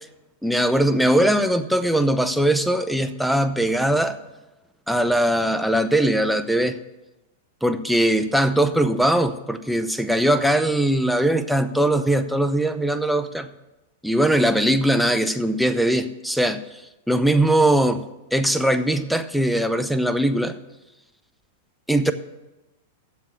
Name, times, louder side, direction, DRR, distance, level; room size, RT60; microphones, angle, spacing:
voice 1, 0.4-4.2 4.9-6.8 7.6-13.5 14.0-16.6 17.1-18.0 18.3-20.5 21.9-22.1, right 1 dB, ahead, 9 dB, 0.7 m, -20 dB
7.4 x 7.3 x 8.2 m, 1.0 s
hypercardioid pair, 105°, 0 cm